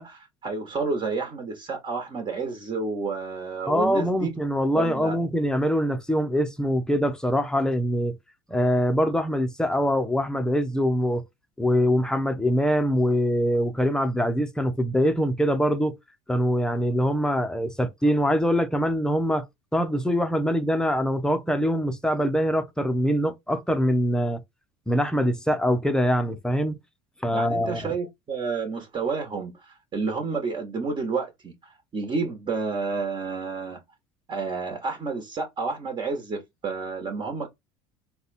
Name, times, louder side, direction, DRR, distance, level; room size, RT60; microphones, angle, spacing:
voice 1, 0.0-4.3 4.8-5.3 27.3-33.8 34.3-37.5, right 4 dB, 35° right, 1.4 m, -30 dB
voice 2, 3.7-8.2 8.5-11.2 11.6-15.9 16.3-19.4 19.7-24.4 24.9-26.8 27.2-27.9, equal, 5° left, 0.8 m, -23 dB
4.1 x 2.4 x 4.1 m
supercardioid pair, 90°, 14 cm